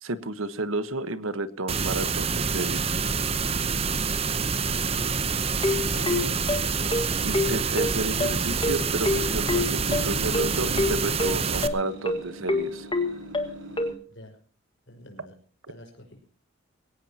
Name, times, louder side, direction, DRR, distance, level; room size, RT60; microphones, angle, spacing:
voice 1, 0.0-3.0 7.2-12.9, right 2 dB, 90° right, 13 dB, 1.3 m, -31 dB
sound 1, 1.7-11.7, right 5 dB, 30° right, 0.8 m, -27 dB
sound 2, 3.4-13.9, right 2 dB, 70° right, 5.1 m, -44 dB
sound 3, 5.6-13.9, left 2 dB, 25° left, 1.6 m, -26 dB
voice 2, 5.8-6.8 14.1-14.4 14.9-15.3 15.7-16.2, left 1 dB, 65° left, 3 dB, 5.5 m, -45 dB
21.5 x 17.5 x 2.9 m, 0.39 s
head